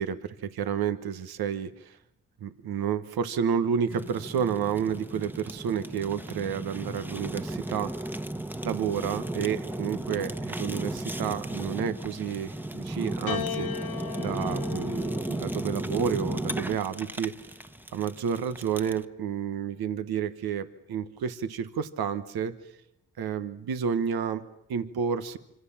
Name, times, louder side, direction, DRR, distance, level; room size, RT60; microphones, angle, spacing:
voice 1, 0.0-2.0 2.4-8.2 8.6-13.7 14.2-17.6 17.9-22.5 23.2-25.4, right 7 dB, 90° right, 11 dB, 1.4 m, -30 dB
Fire, 3.9-19.0, right 1 dB, 5° right, 1.2 m, -35 dB
Piano, 13.3-17.8 18.8-19.5, left 9 dB, 80° left, 1.9 m, -39 dB
26.0 x 26.0 x 7.3 m, 0.79 s
cardioid pair, 65°, 36 cm